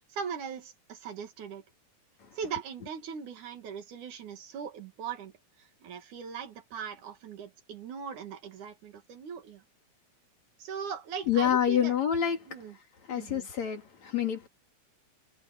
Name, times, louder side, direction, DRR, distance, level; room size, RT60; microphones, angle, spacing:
voice 1, 0.0-1.6 2.4-9.6 10.6-12.0 12.5-12.8 13.1-13.5, right 7 dB, 75° right, 3.5 m, -40 dB
voice 2, 11.3-12.4 13.1-14.5, left 9 dB, 60° left, 4.4 m, -27 dB
omnidirectional pair, 3.5 m